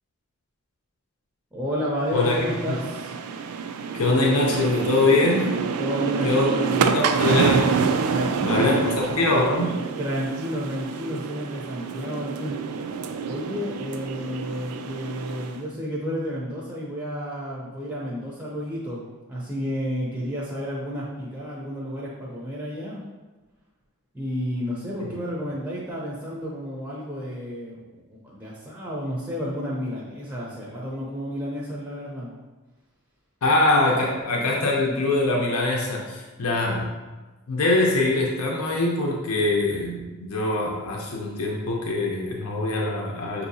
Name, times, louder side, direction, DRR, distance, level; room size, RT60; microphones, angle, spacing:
voice 1, 1.5-3.1 5.8-7.0 8.1-8.9 10.0-12.6 13.2-23.0 24.1-32.4, equal, 5° right, -5 dB, 0.5 m, -31 dB
voice 2, 2.1-2.8 3.9-5.4 6.2-6.5 6.8-7.8 8.4-8.8 9.2-9.7 33.4-36.9 37.5-43.5, left 2 dB, 80° left, -1 dB, 0.6 m, -23 dB
sound 1, 2.1-15.6, right 5 dB, 80° right, 0.3 m, -27 dB
6.2 x 2.7 x 2.7 m, 1.2 s
head